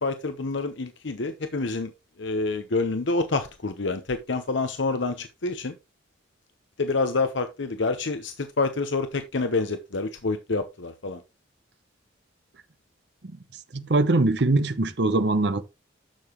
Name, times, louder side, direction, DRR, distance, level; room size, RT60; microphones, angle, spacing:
voice 1, 0.0-1.9 2.2-5.7 6.8-11.2, left 3 dB, 70° left, 0.8 m, -27 dB
voice 2, 13.7-15.6, right 2 dB, 60° right, 0.8 m, -22 dB
10.5 x 6.9 x 3.0 m
head